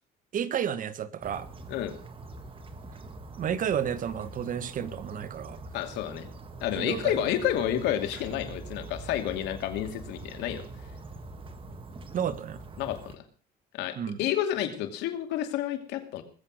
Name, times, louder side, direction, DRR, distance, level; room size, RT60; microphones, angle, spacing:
voice 1, 0.3-1.5 3.4-5.6 6.7-7.2 12.1-12.6 14.0-14.2, right 8 dB, 50° right, 1.3 m, -31 dB
sound 1, 1.2-13.2, right 2 dB, 30° right, 1.9 m, -44 dB
voice 2, 5.7-6.3 6.6-10.6 12.8-13.2 13.7-16.2, left 11 dB, 90° left, 2.6 m, -30 dB
sound 2, 8.1-12.9, right 6 dB, 70° right, 6.1 m, -49 dB
20.0 x 8.0 x 6.5 m
cardioid pair, 110°, 17 cm